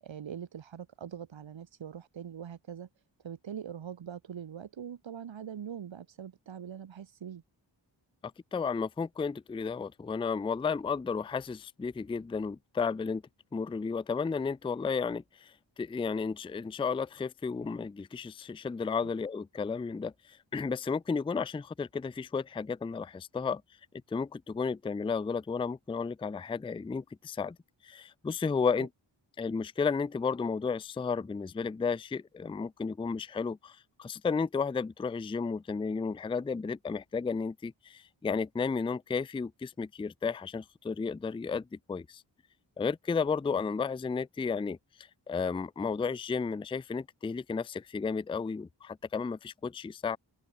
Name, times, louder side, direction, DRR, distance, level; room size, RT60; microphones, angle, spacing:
voice 1, 0.0-2.9 3.2-7.4 19.0-19.1 28.8-28.9, right 8 dB, 80° right, 1.3 m, -42 dB
voice 2, 8.5-13.2 13.5-23.6 24.1-27.6 27.8-28.9 29.4-42.2 42.8-50.2, left 5 dB, 15° left, 0.3 m, -33 dB
open air
wide cardioid pair, 105°, 45 cm